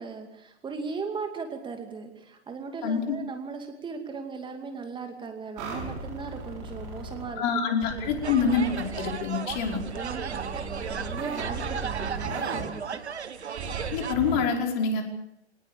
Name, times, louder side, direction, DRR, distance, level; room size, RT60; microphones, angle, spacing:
voice 1, 0.0-8.3 9.9-13.0, right 5 dB, 15° right, 5 dB, 2.5 m, -38 dB
voice 2, 2.8-3.2 7.4-9.8 13.9-15.0, left 5 dB, 40° left, 2 dB, 5.2 m, -26 dB
sound 1, 5.6-7.2 7.8-9.1 9.5-12.6 13.6-14.4, right 3 dB, 35° right, 7.6 m, -36 dB
sound 2, 8.2-14.1, right 7 dB, 75° right, 1.6 m, -35 dB
24.5 x 19.5 x 7.1 m, 0.80 s
figure-of-eight pair, 115°, 34 cm